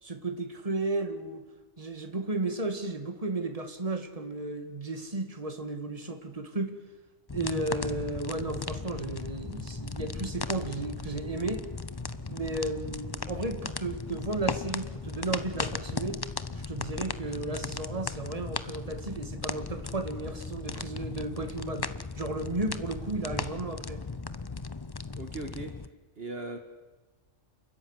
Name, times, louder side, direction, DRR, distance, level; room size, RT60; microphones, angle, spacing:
voice 1, 0.0-1.4 1.8-6.8 7.3-11.6 12.3-16.2 16.7-24.0, right 2 dB, 30° right, 6 dB, 2.3 m, -34 dB
sound 1, 7.3-25.9, left 4 dB, 25° left, 0.6 m, -37 dB
voice 2, 25.2-25.8 26.2-26.6, right 2 dB, 50° right, 5 dB, 2.0 m, -38 dB
30.0 x 14.0 x 9.8 m, 1.2 s
omnidirectional pair, 1.3 m